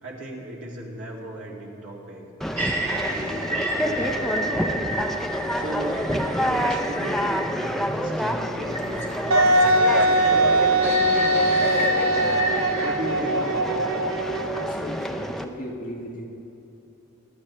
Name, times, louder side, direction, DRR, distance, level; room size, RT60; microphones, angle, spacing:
voice 1, 0.0-2.3 2.8-4.9 5.5-9.4 9.9-12.3 12.8-14.0, right 1 dB, 60° right, -4 dB, 2.5 m, -36 dB
Conversation, 2.4-15.5, equal, ahead, 0.4 m, -28 dB
sound 1, 2.6-7.8 8.7-12.9, right 1 dB, 30° right, 2.1 m, -30 dB
Wind instrument woodwind instrument, 9.3-14.9, right 1 dB, 90° right, 0.6 m, -21 dB
voice 2, 14.5-16.2, equal, 40° left, -2 dB, 1.9 m, -37 dB
23.5 x 11.5 x 3.3 m, 2.9 s
head